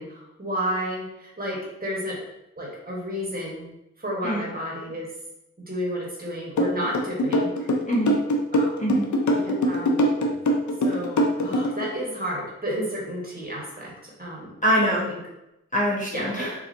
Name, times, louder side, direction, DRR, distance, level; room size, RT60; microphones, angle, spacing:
voice 1, 0.0-2.2 2.6-3.7 4.0-5.1 5.6-7.7 8.5-9.0 9.4-9.9 10.8-14.5 15.1-15.2 16.1-16.4, equal, 30° right, -3 dB, 1.3 m, -31 dB
sound 1, 6.6-11.8, equal, 75° left, 0.6 m, -22 dB
voice 2, 7.9-8.2 8.8-9.1 14.6-15.1 15.7-16.5, right 1 dB, 25° left, -4 dB, 0.9 m, -23 dB
3.9 x 2.7 x 2.6 m, 0.88 s
cardioid pair, 50°, 30 cm